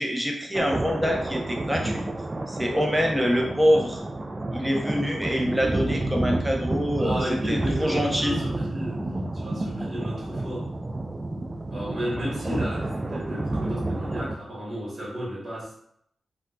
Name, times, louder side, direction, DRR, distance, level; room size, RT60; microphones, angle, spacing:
voice 1, 0.0-2.1 2.5-4.0 4.5-8.4, equal, 10° right, 0 dB, 0.8 m, -25 dB
sound 1, 0.5-14.3, right 2 dB, 30° right, 0.3 m, -30 dB
voice 2, 7.0-9.0 9.3-10.7 11.7-15.8, equal, 45° right, -5 dB, 1.3 m, -33 dB
3.8 x 2.2 x 2.3 m, 0.69 s
cardioid pair, 50°, 0 cm